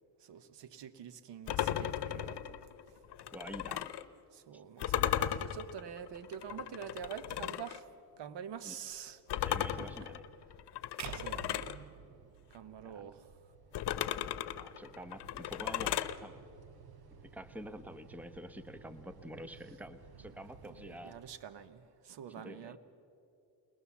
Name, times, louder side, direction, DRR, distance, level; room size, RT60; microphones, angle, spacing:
voice 1, 0.2-3.0 4.3-7.9 8.2-9.2 10.0-10.1 11.1-11.9 12.5-13.3 20.1-20.4 20.7-22.8, right 8 dB, 80° right, 13 dB, 1.0 m, -47 dB
sound 1, 1.5-4.1 4.8-7.8 9.3-11.8 13.7-16.2, left 11 dB, 70° left, 0.8 m, -36 dB
voice 2, 3.3-3.9 4.5-4.6 8.6-8.8 9.4-10.2 12.8-13.0 14.6-16.4 17.2-21.2 22.4-22.8, equal, 5° right, 11 dB, 0.8 m, -47 dB
sound 2, 6.0-6.5 6.8-7.1 7.6-21.9, right 5 dB, 60° right, 1.4 m, -59 dB
sound 3, 11.0-13.2, right 10 dB, 45° right, 0.5 m, -47 dB
21.5 x 20.0 x 7.1 m, 2.8 s
cardioid pair, 115°, 42 cm